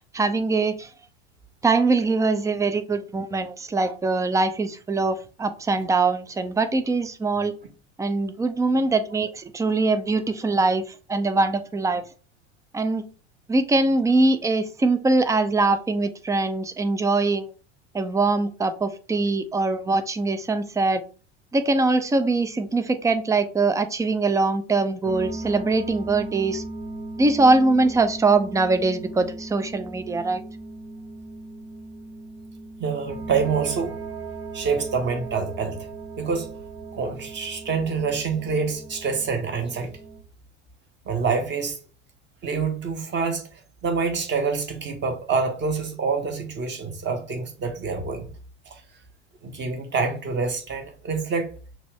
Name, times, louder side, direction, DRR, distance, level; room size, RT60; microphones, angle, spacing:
voice 1, 0.1-0.9 1.6-7.6 8.0-12.0 12.7-13.0 13.5-17.5 17.9-21.0 21.5-26.6 27.2-30.4, right 3 dB, 10° right, 0.4 m, -22 dB
sound 1, 25.0-40.2, right 3 dB, 60° right, 2.2 m, -37 dB
voice 2, 32.8-33.9 34.5-35.7 36.2-36.5 36.9-39.9 41.0-41.8 42.4-43.5 43.8-48.3 48.7-48.8 49.4-51.5, right 5 dB, 30° right, 1.4 m, -26 dB
5.9 x 2.6 x 3.4 m
figure-of-eight pair, 80°, 36 cm